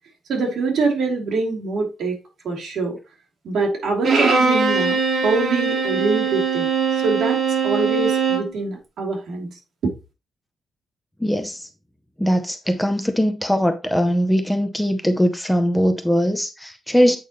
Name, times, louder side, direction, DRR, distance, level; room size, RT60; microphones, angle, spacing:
voice 1, 0.3-2.2 2.4-3.0 3.4-6.7 6.9-9.5 9.8-9.9, right 3 dB, 65° right, 2.9 m, -24 dB
Bowed string instrument, 4.0-8.5, right 5 dB, 50° right, 2.6 m, -21 dB
voice 2, 11.2-11.7 12.2-17.2, equal, 5° left, 0.6 m, -20 dB
8.5 x 5.6 x 3.0 m
wide cardioid pair, 170°, 0 cm